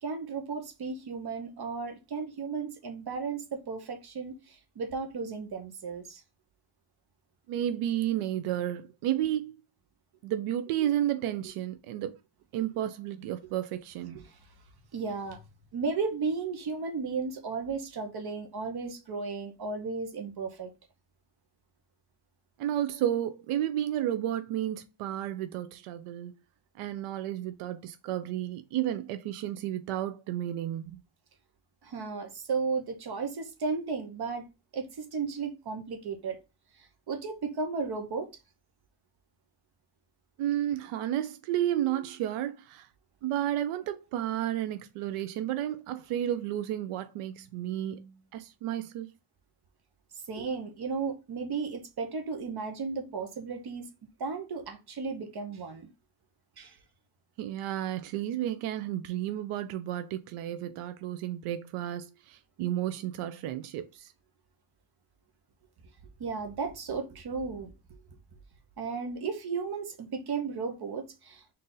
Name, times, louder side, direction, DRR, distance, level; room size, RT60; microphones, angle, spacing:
voice 1, 0.0-6.2 14.2-14.4 14.9-15.4 15.7-20.7 31.8-36.4 37.1-38.3 50.3-53.9 54.2-55.9 56.6-56.8 66.2-67.7 68.8-71.4, right 4 dB, 50° right, 0.9 m, -34 dB
voice 2, 7.5-9.5 10.2-12.2 12.5-14.3 22.6-26.3 26.8-31.0 40.4-42.9 43.2-49.1 57.4-64.1, right 12 dB, 90° right, 0.6 m, -32 dB
3.9 x 2.7 x 3.8 m
cardioid pair, 100°, 49 cm